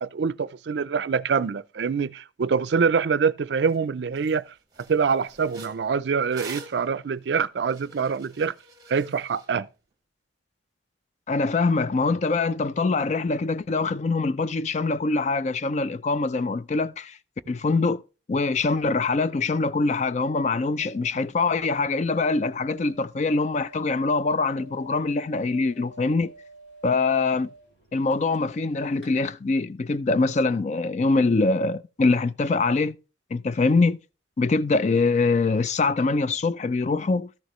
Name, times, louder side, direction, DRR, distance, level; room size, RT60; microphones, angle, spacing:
voice 1, 0.0-4.4 4.9-8.5 8.9-9.7, right 5 dB, 65° right, 0.4 m, -25 dB
sound 1, 3.7-3.8 4.2-4.4 4.7-9.5, right 2 dB, 20° right, 1.3 m, -45 dB
voice 2, 11.3-17.2 17.5-18.0 18.3-26.3 26.8-27.5 27.9-33.0 33.3-34.0 34.4-37.3, left 3 dB, 40° left, 0.4 m, -24 dB
sound 2, 20.5-28.7 28.9-29.1, right 2 dB, 75° left, 2.7 m, -50 dB
13.0 x 6.5 x 3.1 m
head